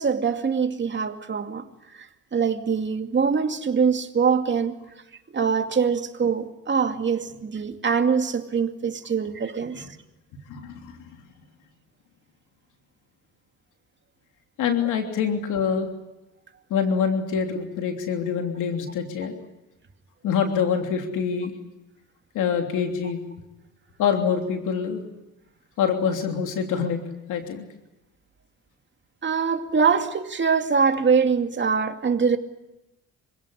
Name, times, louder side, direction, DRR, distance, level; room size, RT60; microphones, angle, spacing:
voice 1, 0.0-1.7 1.9-2.1 2.3-4.7 5.3-9.9 29.2-32.4, right 6 dB, 40° right, 2.5 m, -23 dB
voice 2, 10.5-10.9 14.6-15.9 16.7-19.3 20.2-21.5 22.3-23.2 24.0-25.0 25.8-27.0 27.3-27.6, left 7 dB, 90° left, 3.2 m, -25 dB
27.0 x 17.0 x 10.0 m
cardioid pair, 90°, 30 cm